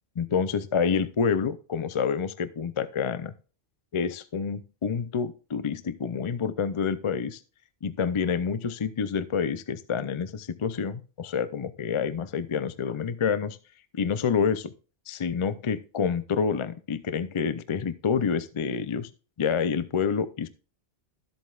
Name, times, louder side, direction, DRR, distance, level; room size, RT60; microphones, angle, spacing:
voice 1, 0.2-3.3 3.9-7.4 7.8-13.6 13.9-14.7 15.1-19.1 19.4-20.5, left 6 dB, 45° left, 13 dB, 0.4 m, -28 dB
13.0 x 7.8 x 2.4 m, 0.36 s
omnidirectional pair, 1.2 m